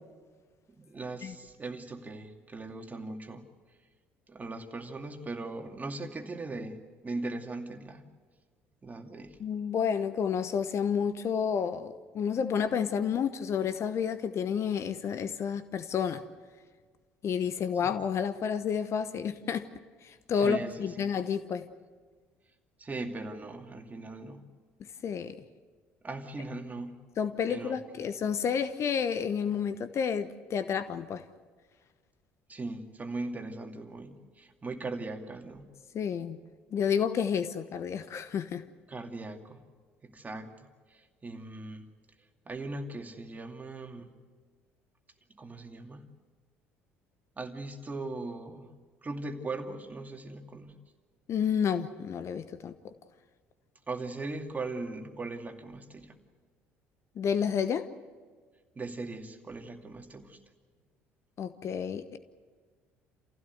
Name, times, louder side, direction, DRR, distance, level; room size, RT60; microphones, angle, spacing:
voice 1, 0.8-3.5 4.3-6.8 7.0-8.0 8.8-9.4 17.8-17.9 20.3-21.1 22.8-24.4 26.0-27.0 27.5-27.8 32.5-35.7 38.9-39.6 40.0-40.6 40.9-41.8 42.5-44.1 45.3-46.0 47.4-48.7 49.0-50.7 53.9-56.2 58.8-60.4, right 2 dB, 25° right, 4 dB, 2.5 m, -39 dB
voice 2, 9.4-16.2 17.2-19.7 20.3-21.7 25.0-25.4 27.2-31.2 35.9-36.4 36.7-38.7 51.3-52.7 57.2-57.9 61.4-62.2, left 7 dB, 45° left, 12 dB, 1.0 m, -30 dB
27.5 x 16.0 x 8.0 m, 1.5 s
hypercardioid pair, 55°, 6 cm